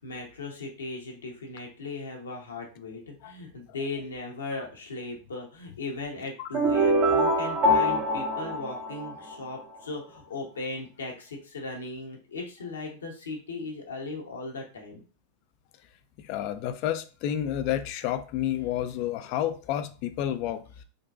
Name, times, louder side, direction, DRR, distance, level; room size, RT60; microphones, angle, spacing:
voice 1, 0.0-15.0, left 3 dB, 85° left, 1.0 m, -37 dB
sound 1, 6.5-9.6, equal, 45° right, 0.8 m, -24 dB
voice 2, 16.3-20.6, left 11 dB, 50° left, 0.4 m, -30 dB
3.8 x 2.2 x 2.5 m
hypercardioid pair, 100°, 0 cm